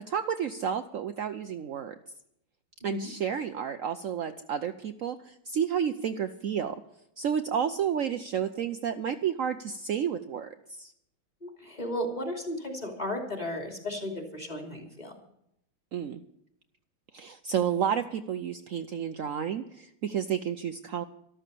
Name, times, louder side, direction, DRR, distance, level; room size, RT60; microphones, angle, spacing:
voice 1, 0.1-1.9 2.8-6.8 7.2-10.9 15.9-16.2 17.1-21.0, right 8 dB, 75° right, 8 dB, 0.7 m, -31 dB
voice 2, 2.8-3.1 11.4-15.2, left 1 dB, 20° left, 3 dB, 2.9 m, -35 dB
13.5 x 13.0 x 6.8 m, 0.76 s
omnidirectional pair, 2.2 m